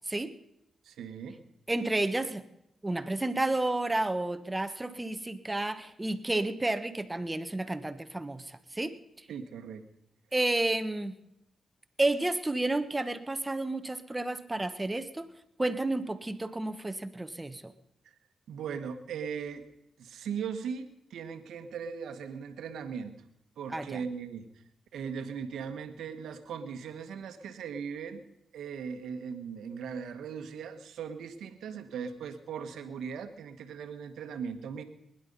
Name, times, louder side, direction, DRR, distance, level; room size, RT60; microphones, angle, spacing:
voice 1, 0.8-1.4 9.3-9.9 18.5-19.6 20.0-23.2 23.6-24.5 24.9-28.2 28.5-34.8, right 6 dB, 85° right, 9 dB, 1.3 m, -38 dB
voice 2, 1.7-2.4 2.8-9.0 10.3-11.1 12.0-15.3 15.6-17.7 23.7-24.0, right 2 dB, 20° right, 11 dB, 1.2 m, -31 dB
21.0 x 11.0 x 5.4 m, 0.81 s
supercardioid pair, 55°, 0 cm